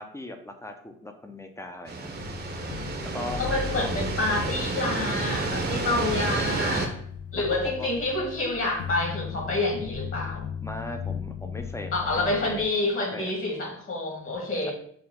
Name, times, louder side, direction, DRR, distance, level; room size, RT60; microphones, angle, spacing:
voice 1, 0.0-2.1 3.1-3.4 7.6-7.9 10.6-12.6 12.9-13.3, left 2 dB, 10° left, 5 dB, 0.5 m, -38 dB
sound 1, 1.9-6.9, right 3 dB, 35° right, 0.8 m, -30 dB
sound 2, 2.1-12.6, left 7 dB, 75° left, 0.6 m, -37 dB
voice 2, 3.4-7.0 7.3-10.5 11.9-14.7, left 2 dB, 45° left, 0 dB, 1.7 m, -28 dB
4.9 x 2.4 x 3.5 m, 0.63 s
cardioid pair, 90°, 30 cm